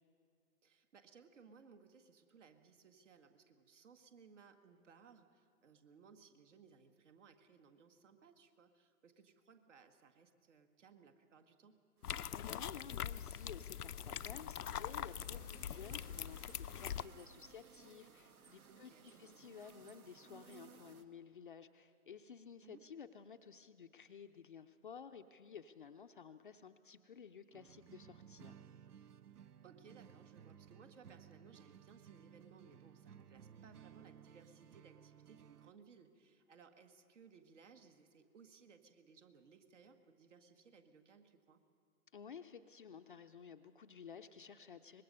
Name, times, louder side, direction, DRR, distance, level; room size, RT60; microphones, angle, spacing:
voice 1, 0.6-11.8 18.7-19.3 22.6-22.8 29.6-41.6, right 5 dB, 50° right, 8 dB, 1.8 m, -63 dB
sound 1, 12.0-17.0, left 9 dB, 85° left, 0.6 m, -43 dB
sound 2, 12.0-21.0, right 6 dB, 70° right, 1.4 m, -62 dB
voice 2, 12.3-28.6 42.1-45.0, left 7 dB, 35° left, 8 dB, 0.5 m, -54 dB
sound 3, 27.5-35.7, right 8 dB, 90° right, 0.6 m, -59 dB
24.0 x 20.5 x 5.4 m, 2.5 s
figure-of-eight pair, 140°, 45 cm